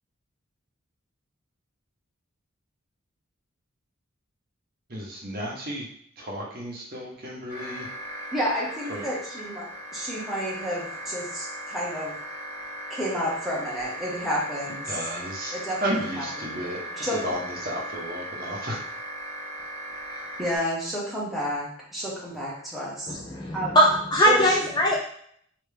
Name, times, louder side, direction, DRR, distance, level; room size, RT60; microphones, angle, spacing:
voice 1, 4.9-5.9 6.2-7.9 8.9-9.0 14.9-15.5 15.8-18.8, equal, 45° right, -3 dB, 0.9 m, -33 dB
sound 1, 7.5-20.6, right 1 dB, 50° left, 1.5 m, -38 dB
voice 2, 8.3-9.6 9.9-12.1 12.9-15.0 15.5-16.5 17.0-17.2 20.4-23.2 23.5-23.7 24.2-24.9, equal, ahead, -7 dB, 1.0 m, -30 dB
voice 3, 23.1-25.0, equal, 20° left, -2 dB, 0.4 m, -21 dB
3.3 x 2.9 x 3.3 m, 0.64 s
head